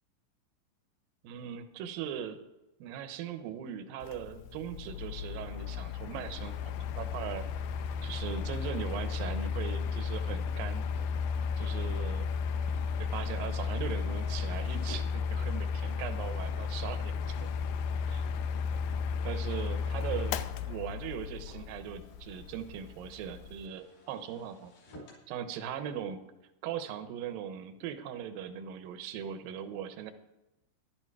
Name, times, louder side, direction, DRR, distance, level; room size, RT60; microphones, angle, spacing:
voice 1, 1.2-2.4 2.8-7.7 8.0-10.8 11.6-12.3 13.0-17.5 18.1-18.3 19.2-20.4 20.7-24.7 25.3-26.2 26.6-30.1, right 9 dB, 75° right, 8 dB, 2.2 m, -39 dB
Mechanical fan, 4.0-23.7, left 6 dB, 90° left, 2.2 m, -34 dB
sound 1, 6.2-15.7 16.4-16.5 17.2-25.3, right 1 dB, 60° left, 7.0 m, -58 dB
13.5 x 12.0 x 4.8 m, 0.92 s
omnidirectional pair, 5.3 m